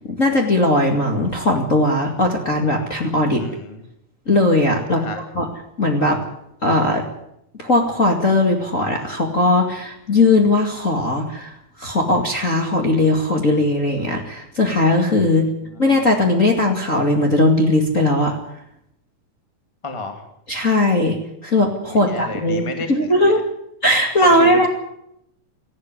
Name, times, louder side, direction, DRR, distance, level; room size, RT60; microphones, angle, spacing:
voice 1, 0.2-3.4 4.3-5.0 5.3-5.5 5.8-6.2 6.6-7.0 7.6-11.5 11.8-15.4 15.8-18.4 20.5-21.2 21.4-23.4 23.8-24.7, left 2 dB, 25° left, 1 dB, 2.0 m, -18 dB
voice 2, 3.4-3.8 4.9-5.2 19.8-20.2 21.9-23.3 24.2-24.7, left 2 dB, 10° left, 5 dB, 1.7 m, -31 dB
18.5 x 14.5 x 9.7 m, 0.78 s
omnidirectional pair, 4.2 m